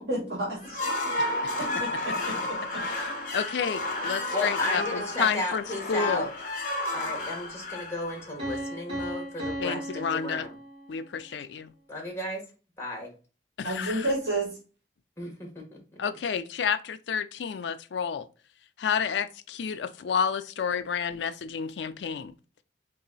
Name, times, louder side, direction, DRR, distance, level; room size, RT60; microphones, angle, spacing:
voice 1, 0.1-0.8 1.6-2.8 13.6-14.6, right 1 dB, 65° right, 1.6 m, -31 dB
sound 1, 0.6-8.7, left 2 dB, 45° left, 0.9 m, -32 dB
voice 2, 3.3-5.6 5.9-6.3 9.6-10.5 10.9-11.7 13.6-14.1 16.0-18.3 18.8-22.3, left 6 dB, 80° left, 0.4 m, -30 dB
voice 3, 4.3-6.3 6.9-10.5 11.9-12.4 12.8-13.1 15.2-15.8, left 2 dB, 15° left, 1.4 m, -34 dB
Piano, 8.4-11.2, right 1 dB, 35° right, 2.4 m, -36 dB
4.0 x 2.8 x 3.9 m
head